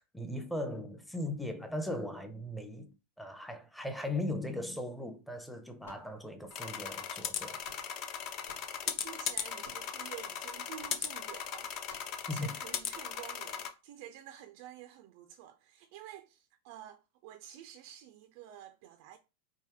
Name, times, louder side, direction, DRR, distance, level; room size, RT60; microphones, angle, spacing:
voice 1, 0.1-7.6 12.3-12.5, left 1 dB, ahead, 0.7 m, -38 dB
sound 1, 5.8-6.6 7.3-8.1 8.4-8.8 9.6-10.0 10.8-11.0 11.9-12.2, left 2 dB, 70° left, 0.9 m, -57 dB
sound 2, 6.5-13.7, left 8 dB, 40° left, 0.6 m, -38 dB
voice 2, 8.8-11.7 12.3-19.2, right 11 dB, 45° right, 0.4 m, -50 dB
4.6 x 2.7 x 3.4 m
figure-of-eight pair, 90°, 0 cm